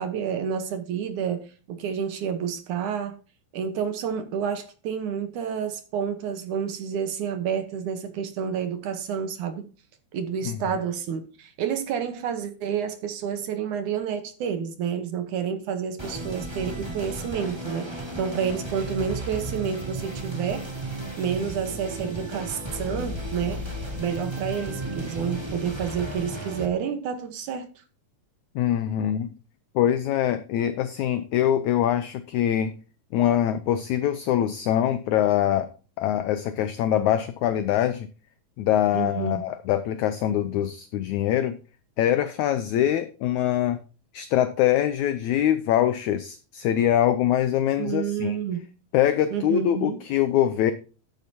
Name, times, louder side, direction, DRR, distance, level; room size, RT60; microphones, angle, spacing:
voice 1, 0.0-3.2 3.5-9.7 10.1-20.7 21.2-23.6 24.0-27.8 38.9-39.5 47.8-48.7 49.3-50.0, right 7 dB, 65° right, 2.4 m, -29 dB
sound 1, 16.0-26.6, right 1 dB, 15° right, 1.0 m, -34 dB
voice 2, 28.6-29.3 29.8-32.7 33.1-35.7 36.0-38.1 38.6-41.6 42.0-43.8 44.1-48.4 48.9-50.7, left 11 dB, 85° left, 1.7 m, -23 dB
12.0 x 10.0 x 2.8 m
omnidirectional pair, 4.1 m